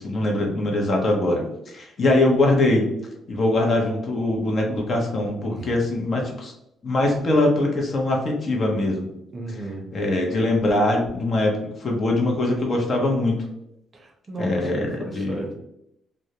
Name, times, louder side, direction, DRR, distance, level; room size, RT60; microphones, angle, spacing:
voice 1, 0.0-2.9 3.3-6.5 6.8-9.1 9.9-11.5 11.8-13.4 14.4-15.4, left 2 dB, 45° left, 0 dB, 0.7 m, -22 dB
voice 2, 9.3-10.0 13.9-15.6, right 1 dB, 35° right, 2 dB, 0.6 m, -34 dB
2.3 x 2.0 x 2.8 m, 0.80 s
cardioid pair, 90°, 0 cm